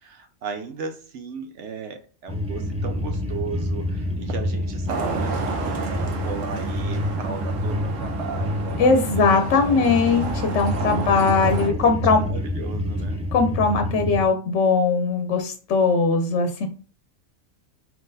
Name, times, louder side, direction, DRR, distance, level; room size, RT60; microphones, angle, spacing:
voice 1, 0.0-9.3 9.6-9.8 10.9-13.2, right 5 dB, 70° right, 5 dB, 0.9 m, -36 dB
sound 1, 2.3-14.2, left 1 dB, 10° right, 0.3 m, -28 dB
Traffic noise roadway noise, 4.9-11.7, right 5 dB, 90° right, 1.2 m, -32 dB
voice 2, 8.8-12.2 13.3-16.7, left 4 dB, 70° left, 5 dB, 0.9 m, -20 dB
4.6 x 3.8 x 2.6 m, 0.39 s
omnidirectional pair, 1.3 m